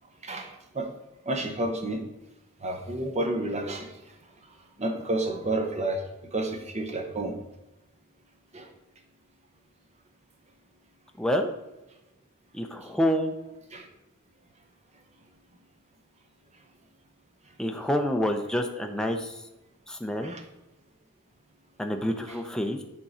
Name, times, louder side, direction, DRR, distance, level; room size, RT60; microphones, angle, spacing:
voice 1, 0.2-0.9 1.3-2.0 2.6-3.9 4.8-6.0 6.3-7.3 8.5-8.7 13.7-13.9 20.2-20.4 22.3-22.4, right 2 dB, 30° right, 4 dB, 1.0 m, -30 dB
voice 2, 11.2-11.5 12.5-13.3 17.6-19.3 19.9-20.4 21.8-22.8, equal, 5° left, 3 dB, 0.6 m, -27 dB
9.6 x 3.7 x 4.3 m, 0.96 s
head